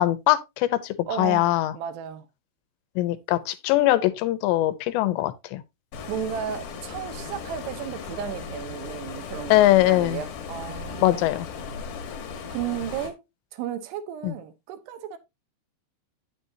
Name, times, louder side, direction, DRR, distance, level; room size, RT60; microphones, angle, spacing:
voice 1, 0.0-1.7 3.0-5.6 9.5-10.2 11.0-11.5 14.2-14.4, left 15 dB, 90° left, 3.0 m, -22 dB
voice 2, 1.1-2.3 6.1-11.3 12.5-13.2 13.5-15.2, right 9 dB, 80° right, 2.8 m, -34 dB
Stream, 5.9-13.1, left 5 dB, 65° left, 2.4 m, -37 dB
9.4 x 6.9 x 2.7 m
omnidirectional pair, 5.0 m